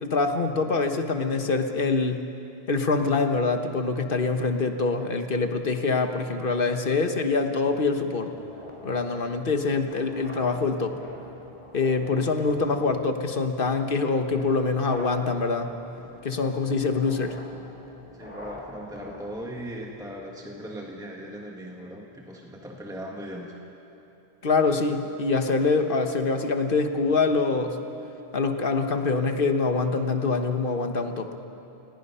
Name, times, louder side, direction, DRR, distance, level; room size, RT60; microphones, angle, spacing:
voice 1, 0.0-2.2 2.7-8.3 8.8-11.0 11.7-15.7 16.2-17.4 24.4-27.8 28.3-31.3, left 4 dB, 60° left, 6 dB, 1.4 m, -25 dB
sound 1, 8.3-20.3, equal, 35° left, 3.7 m, -46 dB
voice 2, 18.1-23.5, equal, 5° right, -1 dB, 1.5 m, -38 dB
28.5 x 18.5 x 5.6 m, 3.0 s
omnidirectional pair, 1.0 m